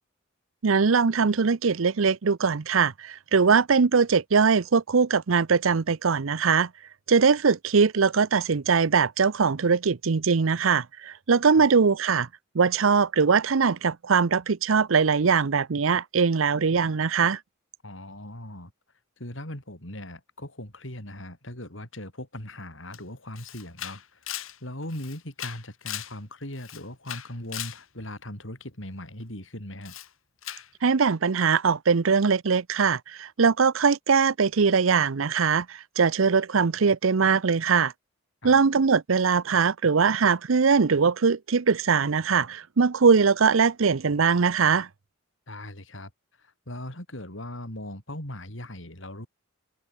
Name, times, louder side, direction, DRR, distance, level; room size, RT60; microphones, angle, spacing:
voice 1, 0.6-6.7 7.1-12.3 12.5-17.4 30.8-37.9 38.4-44.9, right 5 dB, 75° right, 0.7 m, -21 dB
voice 2, 17.8-18.7 19.2-30.0 38.4-38.6 45.5-46.1 46.4-49.3, left 1 dB, 65° left, 7.0 m, -39 dB
Camera, 22.9-23.0 23.4-26.2 26.5-27.8 29.8-30.1 30.4-30.7, left 12 dB, 85° left, 3.2 m, -38 dB
head